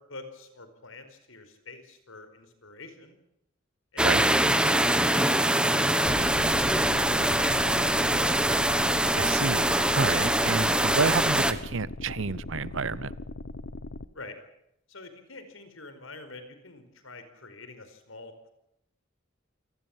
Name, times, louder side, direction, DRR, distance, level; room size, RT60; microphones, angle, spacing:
voice 1, 0.1-3.1 3.9-4.3 5.7-8.1 14.1-14.3 14.9-18.5, left 3 dB, 80° left, 4.9 m, -46 dB
sound 1, 4.0-11.5, right 1 dB, 5° right, 1.3 m, -23 dB
sound 2, 6.0-14.1, left 2 dB, 60° left, 1.0 m, -38 dB
voice 2, 9.1-13.1, right 4 dB, 70° right, 0.9 m, -29 dB
28.0 x 18.5 x 7.4 m
head